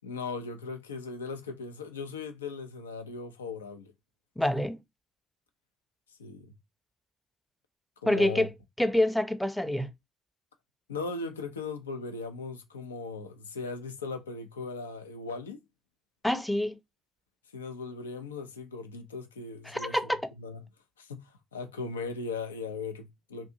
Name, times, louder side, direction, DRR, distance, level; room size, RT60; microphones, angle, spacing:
voice 1, 0.0-3.9 6.2-6.5 8.0-8.5 10.9-15.6 17.5-20.1 20.4-20.6 21.0-23.5, left 4 dB, 85° left, 0.4 m, -38 dB
voice 2, 4.4-4.8 8.1-8.5 8.8-9.9 16.2-16.8 19.7-20.2, left 1 dB, 5° left, 0.5 m, -26 dB
2.6 x 2.5 x 2.6 m
figure-of-eight pair, 45°, 0 cm